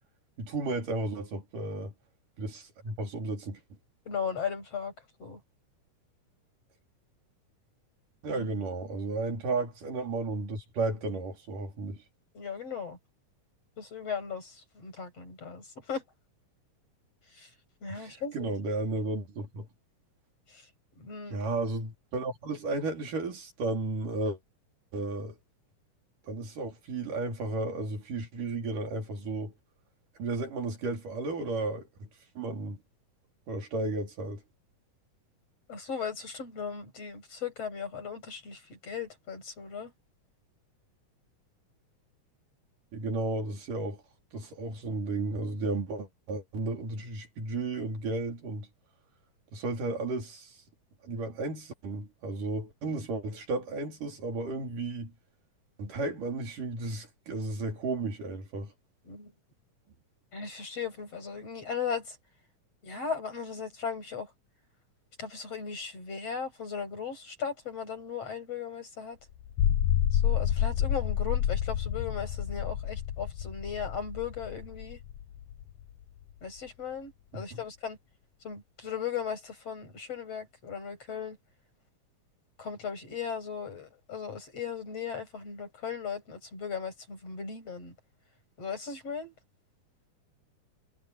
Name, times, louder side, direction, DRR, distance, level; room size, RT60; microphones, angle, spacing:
voice 1, 0.4-1.9 2.4-3.6 8.2-12.0 17.9-19.7 21.3-24.4 24.9-25.4 26.3-29.5 30.2-32.1 32.4-32.8 33.5-34.4 42.9-44.0 44.3-48.7 49.5-50.6 51.0-55.1 55.8-58.7 77.3-77.6, right 2 dB, 75° right, 5.6 m, -33 dB
voice 2, 4.1-4.9 5.2-5.4 8.3-8.6 12.3-13.0 13.8-16.0 17.3-17.5 17.8-18.5 20.5-20.7 21.0-21.4 35.7-39.9 59.0-59.3 60.3-62.2 62.8-64.3 65.2-69.2 70.1-75.0 76.4-78.0 78.4-81.4 82.6-87.9 88.6-89.3, left 6 dB, 50° left, 8.1 m, -37 dB
sound 1, 69.4-75.9, left 10 dB, 65° left, 1.8 m, -29 dB
omnidirectional pair, 3.7 m